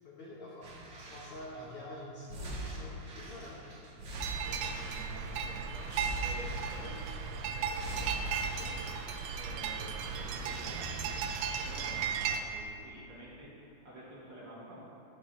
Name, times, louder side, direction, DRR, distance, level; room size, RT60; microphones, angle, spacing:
voice 1, 0.0-0.7 1.0-3.6, left 1 dB, 60° left, -6 dB, 1.7 m, -46 dB
sound 1, 0.6-1.6 2.3-5.4 5.8-7.2 7.7-9.2 9.6-9.7, right 1 dB, 65° right, 1.2 m, -43 dB
sound 2, 4.1-12.4, right 6 dB, 90° right, 2.1 m, -36 dB
voice 2, 4.5-8.9 9.4-14.8, equal, 45° right, -8 dB, 2.0 m, -50 dB
18.0 x 6.7 x 2.7 m, 2.7 s
omnidirectional pair, 3.6 m